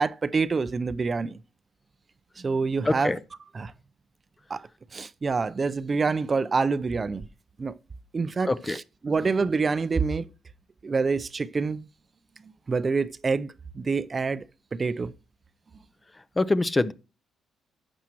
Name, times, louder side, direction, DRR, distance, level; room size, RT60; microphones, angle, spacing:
voice 1, 0.0-1.4 2.4-3.2 3.5-3.7 4.5-7.3 7.6-7.7 8.1-10.3 10.8-11.9 12.7-14.5 14.7-15.1, right 4 dB, 35° right, 0.5 m, -27 dB
voice 2, 2.9-3.2 8.5-8.8 16.4-16.9, left 2 dB, 20° left, 0.6 m, -24 dB
11.5 x 7.4 x 3.0 m
cardioid pair, 90°, 0 cm